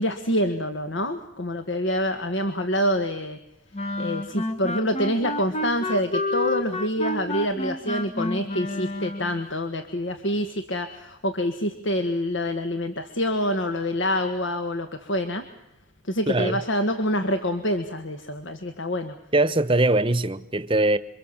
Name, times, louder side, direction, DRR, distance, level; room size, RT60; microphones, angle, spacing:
voice 1, 0.0-3.4 4.0-15.4 16.0-19.1, equal, 65° left, 1.7 m, -26 dB
sound 1, 3.7-9.4, left 1 dB, 30° left, 1.1 m, -29 dB
voice 2, 16.3-16.6 19.3-21.0, right 2 dB, 25° right, 1.0 m, -21 dB
28.0 x 24.5 x 7.3 m
head